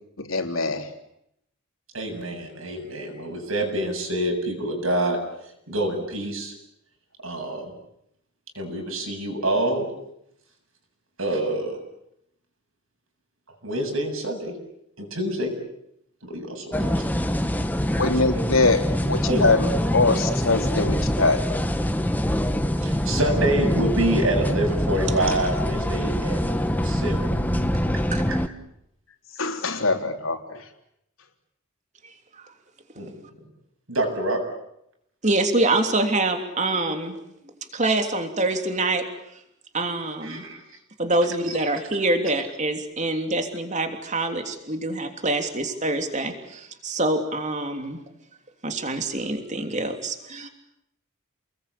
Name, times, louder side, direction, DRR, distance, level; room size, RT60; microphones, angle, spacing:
voice 1, 0.2-0.9 18.0-19.7 19.9-21.5 29.4-30.6, left 3 dB, 75° left, 4 dB, 3.5 m, -23 dB
voice 2, 1.9-6.5 7.2-7.7 8.5-9.9 11.2-11.8 13.5-14.6 15.0-15.6 16.2-17.1 18.3-18.4 19.3-19.4 22.8-26.4 26.8-27.3 27.9-28.4 32.9-33.5 33.9-34.4 40.2-40.8 41.5-41.7, right 1 dB, 75° right, 3 dB, 7.8 m, -27 dB
sound 1, 16.7-28.5, equal, 10° left, 1.3 m, -24 dB
voice 3, 27.7-28.2 32.4-32.5 33.0-33.1 35.2-37.2 37.7-39.0 39.7-40.4 41.0-48.0 48.6-50.5, right 2 dB, 35° right, 5 dB, 3.2 m, -25 dB
29.5 x 21.0 x 8.6 m, 0.78 s
head